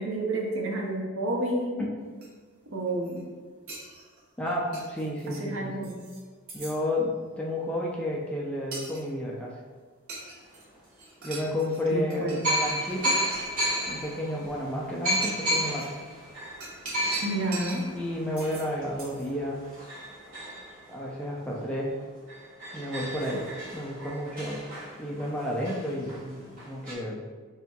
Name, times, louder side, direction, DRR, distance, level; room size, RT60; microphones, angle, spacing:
voice 1, 0.0-1.9 2.7-3.3 5.3-5.9 11.9-12.4 17.2-17.9, right 1 dB, 65° right, 0 dB, 0.6 m, -30 dB
sound 1, 2.2-2.3 2.9-3.2 3.7-5.4 5.8-6.2 6.5-6.8 8.7-9.0 10.1-10.7 10.9-11.8 12.1-13.5 14.4-14.5 15.1-15.9 16.6-17.8 18.4-18.7 19.0-19.3, right 3 dB, 90° right, 1.0 m, -41 dB
voice 2, 4.4-5.9 6.5-9.6 11.2-13.2 13.9-15.9 17.9-19.6 20.9-21.9 22.7-23.5 23.7-24.6 25.0-27.2, left 1 dB, 5° left, -4 dB, 0.4 m, -31 dB
sound 2, 10.7-10.8 11.7-11.8 12.4-21.6 22.0-22.1 22.3-26.9, equal, 40° right, 1.4 m, -33 dB
4.2 x 3.5 x 2.3 m, 1.5 s
head